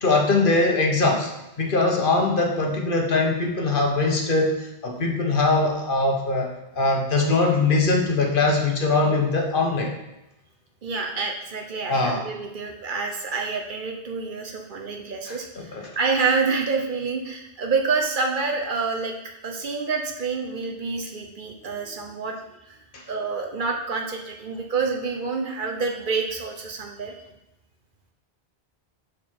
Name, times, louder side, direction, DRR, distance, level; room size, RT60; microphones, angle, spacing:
voice 1, 0.0-1.3 1.6-6.5 6.7-9.9 11.9-12.2 15.3-15.9 22.9-23.0, left 3 dB, 60° left, 1 dB, 1.2 m, -22 dB
voice 2, 10.8-19.2 19.4-22.4 22.7-22.8 23.1-27.2, right 4 dB, 55° right, 1 dB, 0.9 m, -27 dB
6.6 x 5.1 x 4.5 m, 0.93 s
omnidirectional pair, 1.0 m